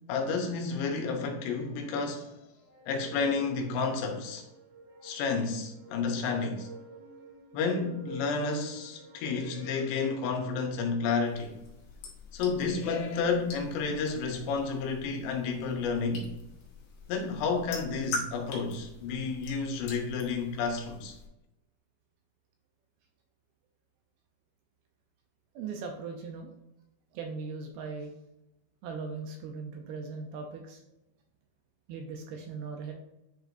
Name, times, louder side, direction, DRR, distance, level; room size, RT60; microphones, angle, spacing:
voice 1, 0.1-2.4 2.9-4.5 5.0-6.7 7.5-11.6 12.3-16.3 17.1-21.2, left 4 dB, 85° left, 3.2 m, -31 dB
sound 1, 2.6-10.8, right 2 dB, 50° right, 3.4 m, -49 dB
sound 2, 11.2-21.3, left 3 dB, 65° left, 3.0 m, -44 dB
voice 2, 25.6-26.5 27.1-28.1 28.8-30.8 31.9-32.9, right 4 dB, 80° right, 2.3 m, -39 dB
10.0 x 4.7 x 2.6 m
omnidirectional pair, 5.0 m